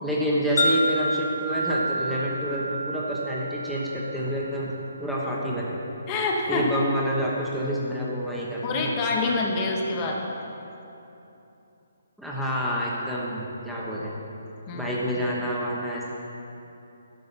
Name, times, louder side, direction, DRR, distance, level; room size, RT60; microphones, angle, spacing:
voice 1, 0.0-4.7 5.0-5.8 6.5-8.8 12.2-14.1 14.7-16.0, equal, ahead, -7 dB, 1.0 m, -28 dB
Wind chime, 0.6-4.9, equal, 50° left, 1.2 m, -29 dB
voice 2, 6.1-6.7 8.6-10.2 14.7-15.0, left 3 dB, 25° left, -1 dB, 1.0 m, -26 dB
11.0 x 5.4 x 5.8 m, 2.9 s
figure-of-eight pair, 135°, 0 cm